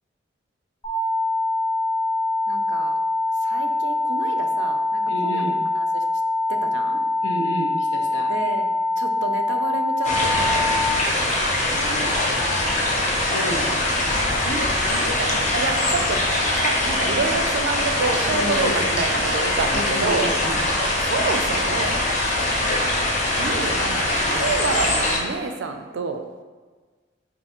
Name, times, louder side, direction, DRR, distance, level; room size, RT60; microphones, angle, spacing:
sound 1, 0.8-10.8, left 1 dB, 15° left, 1.0 m, -24 dB
voice 1, 2.5-3.0 3.4-6.0 6.5-7.0 8.3-10.9 14.4-16.2 16.5-20.3 21.0-22.0 23.4-26.2, right 4 dB, 80° right, 6 dB, 0.4 m, -29 dB
voice 2, 5.1-5.6 7.2-8.4 11.7-12.9 13.1-13.8 18.3-19.1 19.7-20.6, left 1 dB, 80° left, 1 dB, 0.7 m, -31 dB
sound 2, 10.0-25.2, left 1 dB, 40° left, 0.7 m, -22 dB
5.4 x 2.7 x 2.9 m, 1.4 s
head